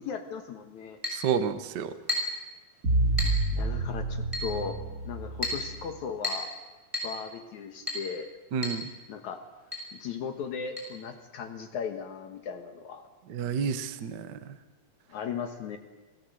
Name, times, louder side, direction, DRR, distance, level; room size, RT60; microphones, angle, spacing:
voice 1, 0.0-1.0 3.5-6.5 7.0-8.3 9.1-9.4 9.9-13.1 15.1-15.8, left 6 dB, 65° left, 6 dB, 2.5 m, -37 dB
Chink clink, 1.0-1.3 2.1-2.4 3.2-3.4 4.3-4.5 5.4-5.7 6.2-6.5 6.9-7.2 7.9-8.1 8.6-8.8 9.1-9.2 9.7-9.9 10.8-10.9, left 2 dB, 10° right, 6.1 m, -32 dB
voice 2, 1.1-1.9 8.5-8.9 13.3-14.3, right 6 dB, 70° right, 9 dB, 1.0 m, -29 dB
sound 1, 2.8-5.9, right 2 dB, 25° right, 4.4 m, -29 dB
27.5 x 18.5 x 7.9 m, 1.2 s
omnidirectional pair, 3.9 m